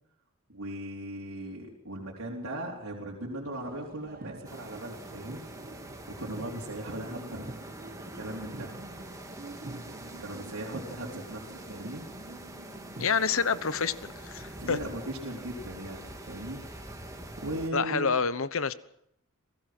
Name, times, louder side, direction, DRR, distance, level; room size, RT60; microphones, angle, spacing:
voice 1, 0.5-5.4 6.1-7.5 8.1-8.8 10.2-12.1 14.6-16.6 17.4-18.1, right 1 dB, 80° right, -3 dB, 4.0 m, -38 dB
sound 1, 3.5-13.1, right 2 dB, 45° right, 1.2 m, -46 dB
sound 2, 4.4-17.7, right 1 dB, 15° right, 2.8 m, -45 dB
voice 2, 13.0-14.8 17.7-18.7, left 5 dB, 65° left, 15 dB, 1.1 m, -28 dB
28.0 x 18.0 x 6.1 m, 0.73 s
head